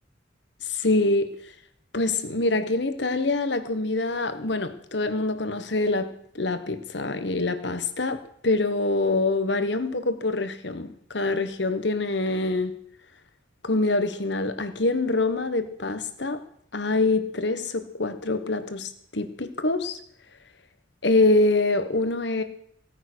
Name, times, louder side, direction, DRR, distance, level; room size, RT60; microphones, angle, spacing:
voice 1, 0.6-1.3 1.9-12.7 13.6-16.4 16.7-20.0 21.0-22.4, left 2 dB, 65° left, 10 dB, 1.3 m, -25 dB
17.5 x 9.0 x 6.3 m, 0.66 s
head